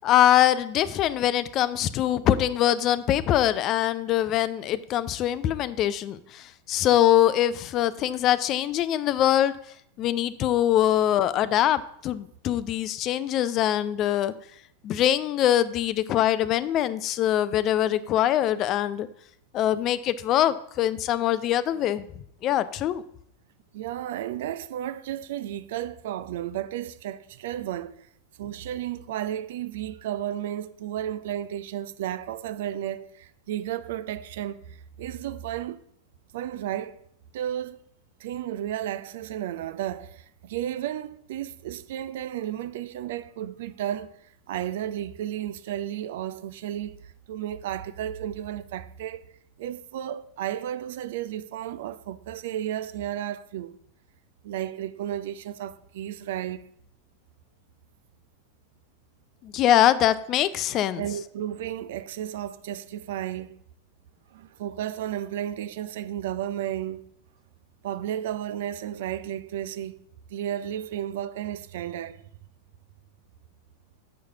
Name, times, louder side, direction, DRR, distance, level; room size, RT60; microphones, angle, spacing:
voice 1, 0.0-9.5 10.0-14.3 14.8-19.1 19.5-22.1 22.4-23.0 59.4-61.0, left 11 dB, 35° left, 0.4 m, -23 dB
voice 2, 23.7-28.1 28.4-35.8 36.3-37.0 37.3-37.8 38.2-44.2 44.5-49.3 49.6-53.8 54.4-56.7 61.0-63.6 64.3-67.1 67.8-70.0 70.3-72.2, right 11 dB, 55° right, 0.5 m, -33 dB
7.0 x 4.8 x 6.8 m
figure-of-eight pair, 90°, 0 cm